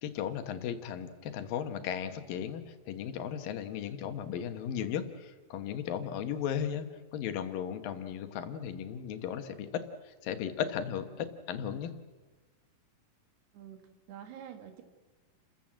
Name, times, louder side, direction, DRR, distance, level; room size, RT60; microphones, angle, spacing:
voice 1, 0.0-6.9 7.1-11.9, left 8 dB, 70° left, 9 dB, 2.8 m, -36 dB
voice 2, 13.5-14.8, right 9 dB, 85° right, 6 dB, 3.9 m, -47 dB
30.0 x 14.5 x 7.6 m, 1.3 s
omnidirectional pair, 4.6 m